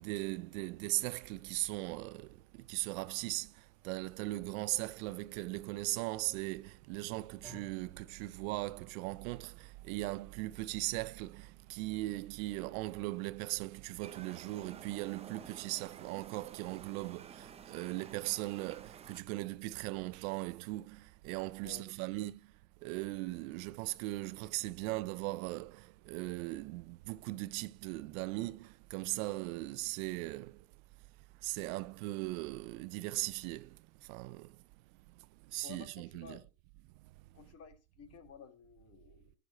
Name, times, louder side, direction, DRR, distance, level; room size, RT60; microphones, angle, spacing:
voice 1, 0.0-22.3 22.8-30.6 31.4-34.6 35.5-36.4, right 20 dB, 65° right, 0.5 m, -39 dB
sound 1, 7.4-15.7, right 1 dB, 5° left, 2.4 m, -63 dB
sound 2, 14.0-19.2, right 7 dB, 15° right, 0.4 m, -52 dB
voice 2, 21.6-22.2 35.6-36.5 37.3-39.3, left 7 dB, 35° left, 1.6 m, -54 dB
11.5 x 6.7 x 4.1 m
supercardioid pair, 135°, 45 cm